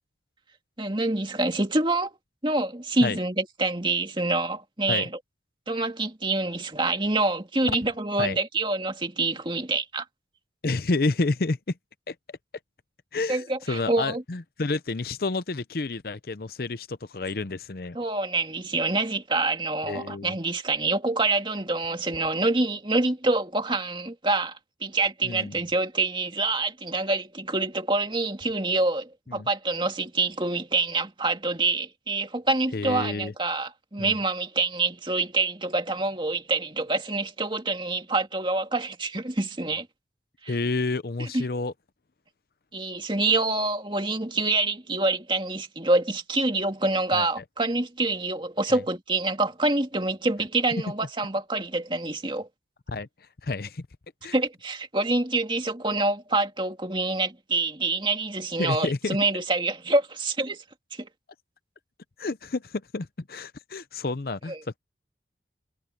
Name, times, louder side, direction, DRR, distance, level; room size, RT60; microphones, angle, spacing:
voice 1, 0.8-2.1 2.4-5.1 5.7-10.1 13.3-14.2 17.9-39.9 40.4-40.6 41.2-41.4 42.7-52.5 54.3-60.6 60.9-61.1 64.5-64.6, right 2 dB, 25° right, 2.3 m, -26 dB
voice 2, 10.6-11.6 12.1-12.2 13.1-18.0 19.8-20.3 25.2-25.5 29.3-29.5 32.7-33.3 34.0-34.2 40.5-41.7 47.1-47.3 48.7-48.8 52.9-53.1 53.4-53.8 54.2-54.4 58.6-59.2 62.2-64.8, left 3 dB, 55° left, 0.7 m, -29 dB
head